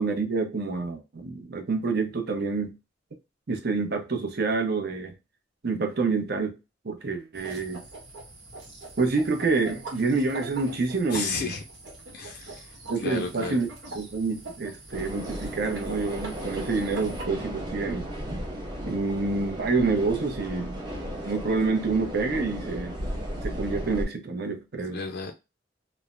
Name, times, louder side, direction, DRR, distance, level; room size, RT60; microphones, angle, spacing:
voice 1, 0.0-2.7 3.5-5.2 5.6-6.5 6.8-7.8 9.0-11.5 12.9-13.7 13.9-18.1 18.8-20.9 21.2-22.9 23.4-25.0, right 4 dB, 60° right, 0.7 m, -27 dB
sound 1, 7.3-17.2, right 2 dB, 85° right, 1.1 m, -43 dB
voice 2, 11.1-11.6 12.1-12.7 13.0-13.5 24.8-25.3, left 4 dB, 60° left, 0.4 m, -33 dB
sound 2, 14.9-24.0, equal, 25° right, 0.7 m, -35 dB
3.1 x 2.1 x 2.4 m
head